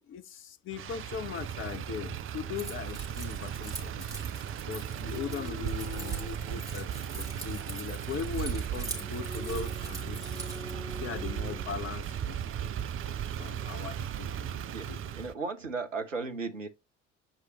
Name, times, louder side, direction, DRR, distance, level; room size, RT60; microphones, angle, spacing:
voice 1, 0.0-4.0 4.6-10.5 11.0-12.4 13.1-15.2, left 7 dB, 35° left, 0.8 m, -40 dB
Motor vehicle (road), 0.7-15.3, right 9 dB, 35° right, 0.7 m, -36 dB
Keys jangling, 2.6-10.7, right 2 dB, 10° right, 3.2 m, -44 dB
sound 1, 5.0-12.0, left 4 dB, 60° left, 1.4 m, -47 dB
voice 2, 14.7-16.7, right 4 dB, 85° right, 0.9 m, -36 dB
8.8 x 4.7 x 3.0 m
figure-of-eight pair, 55°, 37 cm